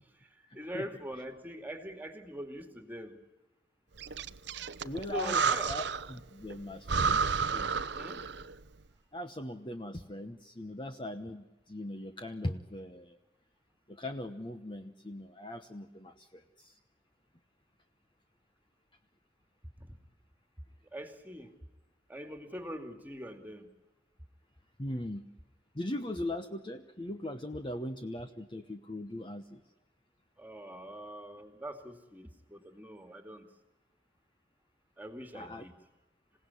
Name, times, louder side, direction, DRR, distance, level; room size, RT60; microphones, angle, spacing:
voice 1, 0.5-3.2 5.1-5.7 7.9-8.2 19.8-19.9 20.9-21.5 22.1-23.7 30.4-33.4 35.0-35.7, equal, 10° right, 7 dB, 2.4 m, -43 dB
Breathing, 4.0-6.2 6.5-6.6 6.9-8.5, right 5 dB, 60° right, 0.8 m, -31 dB
voice 2, 4.8-5.4 5.7-5.8 6.1-7.7 9.1-13.2 13.9-16.7 24.8-25.2 25.7-29.6 35.3-35.6, left 1 dB, 25° left, 7 dB, 1.0 m, -39 dB
27.5 x 17.5 x 9.9 m, 1.1 s
head